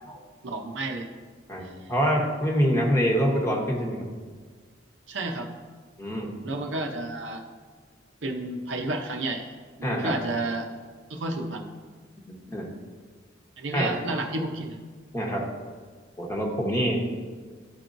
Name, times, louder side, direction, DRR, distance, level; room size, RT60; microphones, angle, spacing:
voice 1, 0.4-1.1 5.1-5.5 6.4-7.5 8.2-9.5 9.8-10.7 11.1-11.7 13.6-14.8, right 2 dB, 70° right, 3 dB, 0.7 m, -31 dB
voice 2, 1.5-4.1 6.0-6.3 9.8-10.1 12.3-12.7 13.7-14.0 15.1-15.5 16.2-17.0, equal, 15° left, -1 dB, 1.0 m, -26 dB
12.0 x 4.5 x 2.6 m, 1.5 s
head